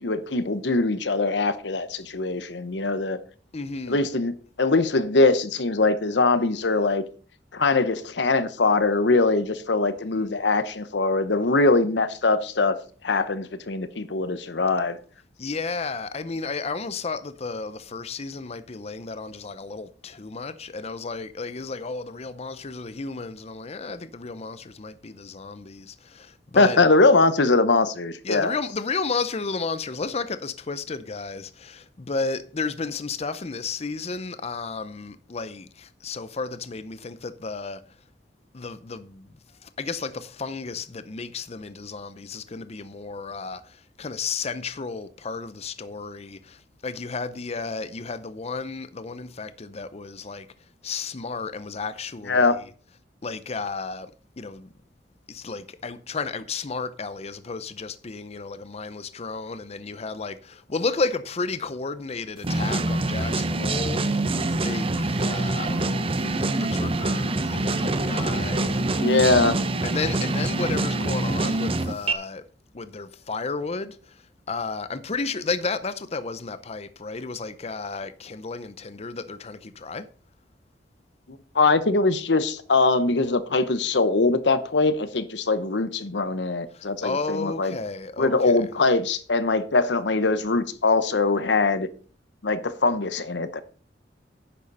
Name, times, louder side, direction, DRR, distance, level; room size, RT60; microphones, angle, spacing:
voice 1, 0.0-3.2 3.9-7.0 7.5-12.8 13.0-15.0 26.5-28.5 52.3-52.5 66.2-66.3 69.0-69.6 81.5-87.8 88.2-91.9 92.4-93.6, left 3 dB, 80° left, 0.9 m, -22 dB
voice 2, 3.5-4.1 15.4-26.8 28.2-37.8 38.5-39.3 39.6-50.5 50.8-52.7 53.2-54.1 54.4-54.7 55.3-69.2 69.8-72.4 72.7-80.1 86.7-88.7, left 4 dB, 35° left, 0.6 m, -33 dB
sound 1, 62.4-72.1, right 2 dB, 35° right, 0.8 m, -25 dB
10.0 x 6.7 x 5.5 m
head